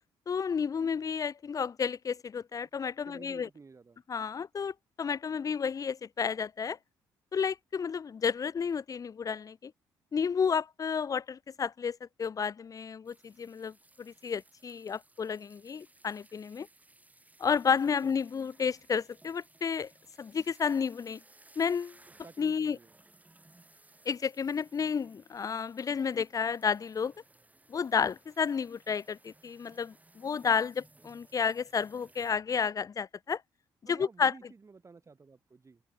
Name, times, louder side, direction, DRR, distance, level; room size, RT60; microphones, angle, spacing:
voice 1, 0.3-3.5 4.1-6.8 7.3-9.7 10.1-16.7 17.4-19.9 20.2-21.2 21.6-22.0 22.4-22.8 24.1-27.1 27.7-33.4 33.9-34.3, left 6 dB, 40° left, 0.6 m, -31 dB
voice 2, 3.1-4.0 18.0-18.1 22.2-22.9 33.8-35.8, right 4 dB, 35° right, 3.3 m, -53 dB
sound 1, 13.0-32.3, right 2 dB, 15° right, 3.2 m, -61 dB
open air
supercardioid pair, 65°, 9 cm